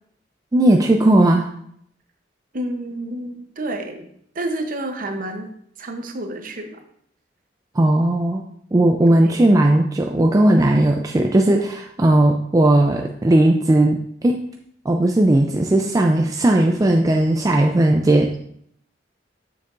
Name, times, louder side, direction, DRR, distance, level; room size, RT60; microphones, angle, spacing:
voice 1, 0.5-1.5 7.8-8.4 8.7-14.4 14.9-18.4, right 1 dB, 20° right, 2 dB, 0.4 m, -17 dB
voice 2, 2.5-4.1 4.3-5.5 5.8-6.8 9.1-9.3, right 1 dB, 50° right, 6 dB, 0.8 m, -29 dB
6.7 x 6.6 x 2.5 m, 0.69 s
head